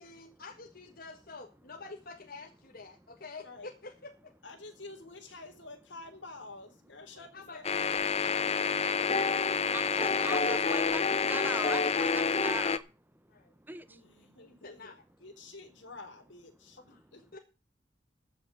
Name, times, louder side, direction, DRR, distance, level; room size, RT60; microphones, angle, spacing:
voice 1, 0.0-4.3 7.1-7.6 13.3-13.5 14.3-15.0 16.8-17.4, left 3 dB, 55° left, 3 dB, 1.7 m, -48 dB
voice 2, 4.4-8.0 13.9-14.9 15.2-17.2, left 3 dB, 70° left, 4 dB, 3.6 m, -49 dB
sound 1, 7.6-12.8, left 5 dB, 35° left, 0.7 m, -28 dB
voice 3, 10.0-11.0 11.3-12.8 13.7-13.8, right 2 dB, 10° right, 13 dB, 0.7 m, -40 dB
15.0 x 5.9 x 7.5 m, 0.32 s
head